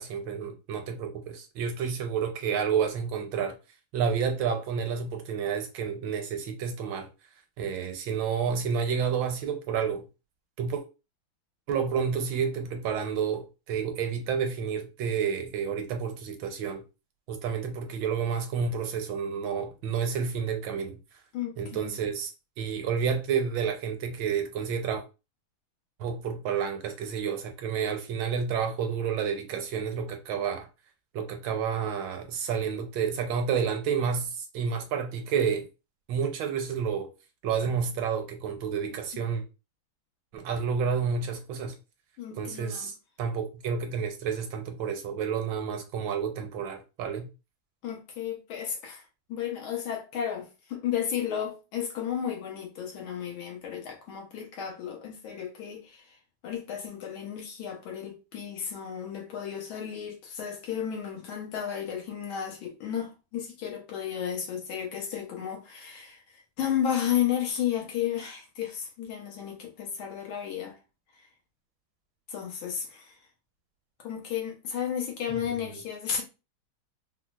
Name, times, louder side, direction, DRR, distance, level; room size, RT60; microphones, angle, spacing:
voice 1, 0.0-3.6 3.9-7.1 7.6-10.0 10.6-10.8 11.7-16.8 17.3-21.0 21.6-22.3 22.6-25.0 26.0-30.7 31.1-35.7 36.1-37.1 37.4-39.4 40.3-41.7 42.4-47.3, right 6 dB, 80° right, 1.3 m, -30 dB
voice 2, 21.3-21.9 39.1-39.3 42.2-42.9 47.8-49.0 49.3-56.1 56.4-66.2 66.6-70.8 72.3-73.2 74.0-76.2, left 9 dB, 90° left, 1.7 m, -33 dB
4.4 x 2.0 x 2.3 m
omnidirectional pair, 2.2 m